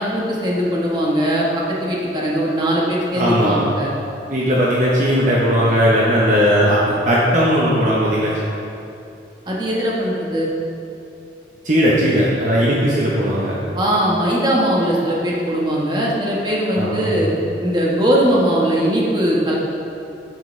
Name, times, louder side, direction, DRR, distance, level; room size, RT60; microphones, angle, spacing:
voice 1, 0.0-3.9 9.5-10.5 13.7-17.3 17.6-19.6, equal, 25° right, -4 dB, 1.3 m, -20 dB
voice 2, 3.1-3.6 4.3-8.3 11.6-13.6 16.8-17.1, equal, 45° right, -6 dB, 1.0 m, -17 dB
9.4 x 7.9 x 3.3 m, 2.7 s
head